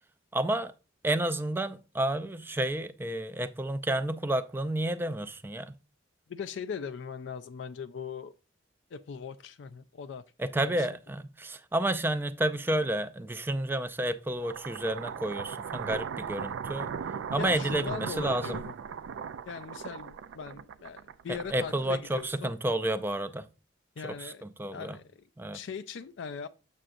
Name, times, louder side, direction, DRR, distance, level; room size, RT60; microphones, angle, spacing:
voice 1, 0.3-0.7 1.0-5.8 10.4-17.0 17.3-18.6 21.5-23.5 24.0-24.3 24.6-25.0 25.4-25.6, right 1 dB, 10° right, 0.4 m, -30 dB
voice 2, 6.3-8.3 8.9-10.2 10.6-10.9 17.4-18.7 19.5-22.5 24.0-24.4 24.7-25.3 25.5-26.5, left 6 dB, 70° left, 0.4 m, -40 dB
sound 1, 14.3-22.6, right 6 dB, 80° right, 0.4 m, -38 dB
7.3 x 6.7 x 2.5 m
head